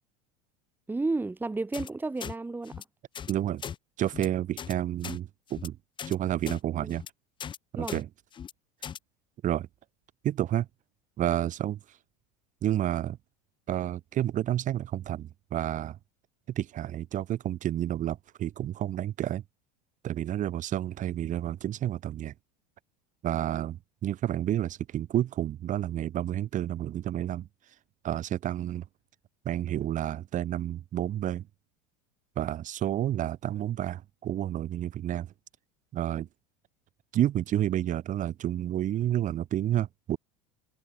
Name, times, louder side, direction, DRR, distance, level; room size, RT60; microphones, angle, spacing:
voice 1, 0.9-2.8 6.8-6.9 7.8-8.0, right 3 dB, 10° right, 1.3 m, -32 dB
sound 1, 1.7-1.9 2.2-2.3 2.6-2.8 3.1-3.3 3.6-3.8 4.1-4.3 4.6-4.7 5.0-5.2 5.5-5.7 6.0-6.1 6.4-6.6 6.9-7.1 7.4-7.6 7.9-8.0 8.3-8.5 8.8-9.0, left 8 dB, 25° left, 0.8 m, -39 dB
voice 2, 3.3-3.6 4.0-5.8 6.0-7.0 7.7-8.1 9.4-9.7 10.2-10.7 11.2-11.8 12.6-13.2 13.7-16.0 16.5-19.4 20.0-22.3 23.2-27.5 28.0-28.8 29.4-31.5 32.4-35.3 35.9-36.3 37.1-40.2, right 12 dB, 40° right, 3.3 m, -30 dB
supercardioid pair, 115°, 20 cm